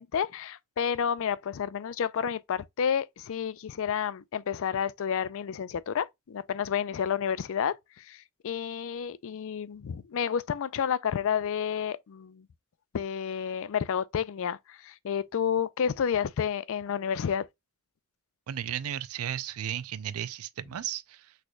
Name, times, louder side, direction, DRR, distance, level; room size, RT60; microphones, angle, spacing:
voice 1, 0.0-7.7 8.1-12.5 12.9-17.4, left 7 dB, 65° left, 0.4 m, -30 dB
voice 2, 18.5-21.3, right 10 dB, 80° right, 0.4 m, -34 dB
6.2 x 3.3 x 2.2 m
head